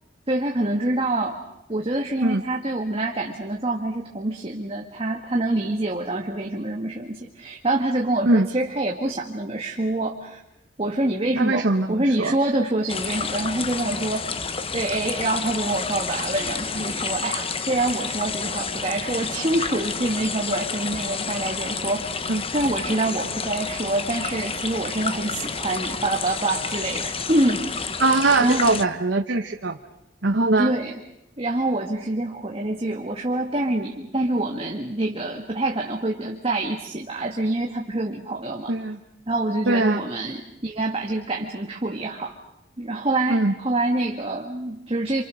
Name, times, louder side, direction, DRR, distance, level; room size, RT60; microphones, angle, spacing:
voice 1, 0.3-1.4 1.7-10.4 10.8-14.4 14.7-27.6 28.4-28.7 30.6-31.0 31.4-38.7 39.3-42.3 42.8-45.2, right 2 dB, 35° right, 1 dB, 1.8 m, -26 dB
voice 2, 11.3-12.3 22.3-22.4 28.0-29.8 30.2-30.7 38.7-39.0 39.7-40.0 43.3-43.5, right 2 dB, 80° right, 5 dB, 1.1 m, -21 dB
sound 1, 12.9-28.8, left 5 dB, 35° left, 1.1 m, -30 dB
28.5 x 27.0 x 6.4 m, 0.88 s
head